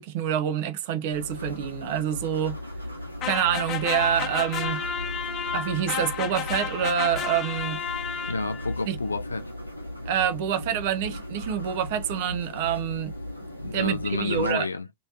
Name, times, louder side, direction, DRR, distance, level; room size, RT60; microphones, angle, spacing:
voice 1, 0.0-2.6 3.2-4.8 5.5-7.8 8.9-9.0 10.1-13.2 13.5-14.7, right 9 dB, 50° right, 0.6 m, -27 dB
sound 1, 1.1-14.5, left 1 dB, 90° right, 0.9 m, -37 dB
sound 2, 3.2-8.7, left 8 dB, 30° left, 0.7 m, -32 dB
voice 2, 8.3-9.5 13.6-14.9, left 3 dB, 80° left, 0.4 m, -29 dB
3.1 x 2.6 x 2.7 m
figure-of-eight pair, 90°, 0 cm